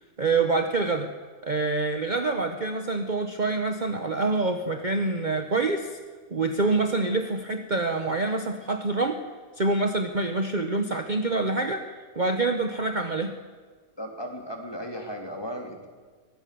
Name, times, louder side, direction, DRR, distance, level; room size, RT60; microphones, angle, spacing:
voice 1, 0.2-1.1 1.4-6.0 6.3-9.2 9.6-11.8 12.1-13.3, right 3 dB, 35° right, 6 dB, 1.3 m, -26 dB
voice 2, 14.0-15.9, equal, 15° left, 2 dB, 3.5 m, -36 dB
24.0 x 20.0 x 7.0 m, 1.5 s
omnidirectional pair, 1.5 m